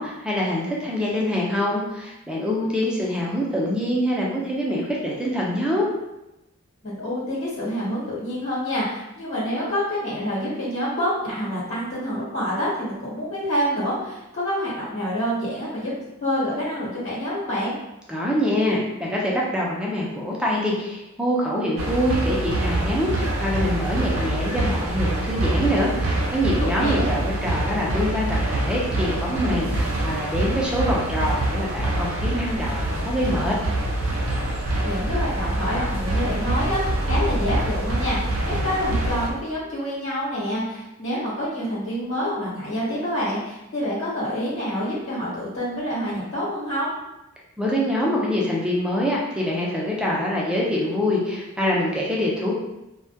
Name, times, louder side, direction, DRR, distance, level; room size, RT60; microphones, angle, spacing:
voice 1, 0.0-5.9 18.1-33.6 47.6-52.5, equal, 5° right, -4 dB, 0.4 m, -25 dB
voice 2, 6.8-15.9 16.2-17.7 26.6-27.0 34.8-46.9, equal, 65° left, -8 dB, 1.0 m, -27 dB
sound 1, 21.8-39.3, right 1 dB, 75° right, 0.5 m, -25 dB
2.2 x 2.1 x 2.7 m, 0.94 s
head